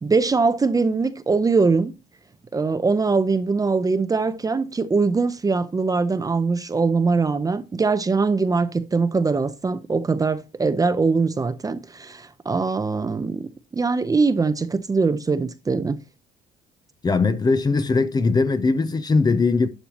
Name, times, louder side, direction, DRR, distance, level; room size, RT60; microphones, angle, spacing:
voice 1, 0.0-1.9 2.5-16.0, right 4 dB, 20° right, 0.7 m, -22 dB
voice 2, 17.0-19.7, left 4 dB, 25° left, 0.7 m, -20 dB
11.5 x 6.7 x 2.9 m
cardioid pair, 110°, 17 cm